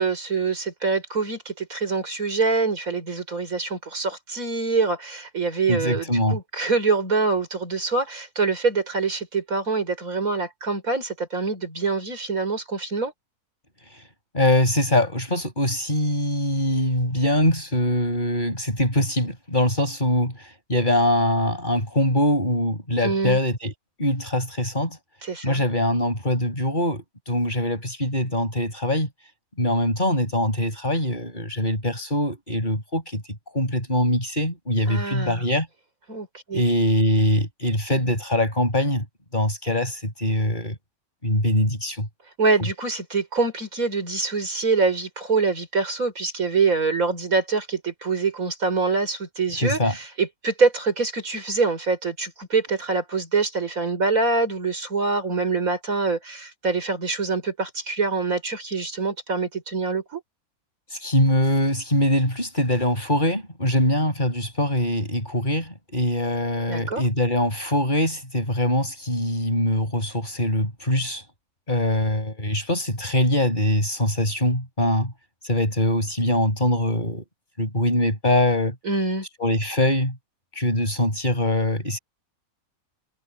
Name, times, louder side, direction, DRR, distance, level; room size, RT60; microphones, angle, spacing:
voice 1, 0.0-6.1 6.3-13.1 23.0-23.4 25.2-25.6 34.9-35.5 36.1-36.6 42.4-60.2 66.7-67.0 78.8-79.3, right 4 dB, 65° right, 5.4 m, -25 dB
voice 2, 5.7-6.4 14.3-23.7 24.0-25.0 25.4-29.1 29.6-33.2 33.5-35.7 36.5-39.0 39.3-40.8 41.2-42.1 49.6-49.9 60.9-71.2 71.7-75.1 75.4-77.2 77.6-78.7 79.4-80.2 80.5-82.0, left 1 dB, 30° left, 8.2 m, -23 dB
omnidirectional pair, 1.5 m